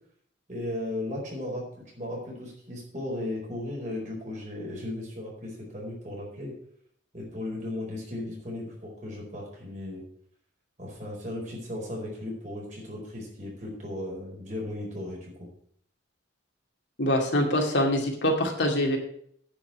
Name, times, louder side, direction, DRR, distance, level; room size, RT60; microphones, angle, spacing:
voice 1, 0.5-1.6 1.9-6.5 7.1-10.0 10.8-15.5, left 1 dB, 40° right, -3 dB, 4.8 m, -36 dB
voice 2, 17.0-19.0, left 1 dB, 60° left, 1 dB, 2.4 m, -24 dB
10.0 x 5.8 x 8.4 m, 0.65 s
head